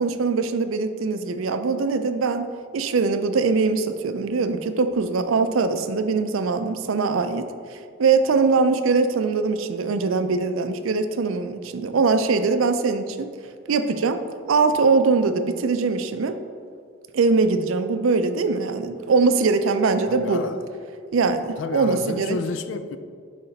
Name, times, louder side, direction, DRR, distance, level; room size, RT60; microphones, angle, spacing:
voice 1, 0.0-13.3 13.7-14.2 14.5-16.4 17.1-20.4 21.1-22.4, right 4 dB, 80° right, 9 dB, 0.4 m, -22 dB
voice 2, 20.1-20.7 21.6-23.0, left 4 dB, 70° left, 11 dB, 0.4 m, -30 dB
9.7 x 3.3 x 4.0 m, 2.2 s
head